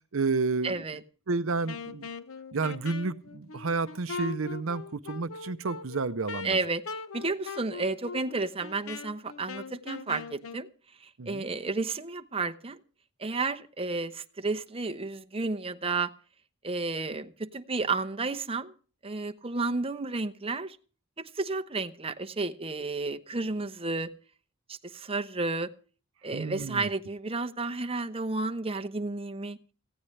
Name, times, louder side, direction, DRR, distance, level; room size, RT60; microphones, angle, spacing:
voice 1, 0.1-0.8 1.3-2.0 2.5-6.6 11.2-11.4 26.3-26.9, right 4 dB, 65° right, 0.6 m, -31 dB
voice 2, 0.6-1.0 6.4-10.7 11.0-12.8 13.2-16.1 16.6-18.7 19.0-20.8 21.2-24.1 24.7-25.7 26.2-29.6, right 3 dB, 25° right, 0.9 m, -32 dB
Wind instrument woodwind instrument, 1.7-10.7, left 4 dB, 75° left, 1.0 m, -41 dB
18.5 x 15.5 x 3.3 m
head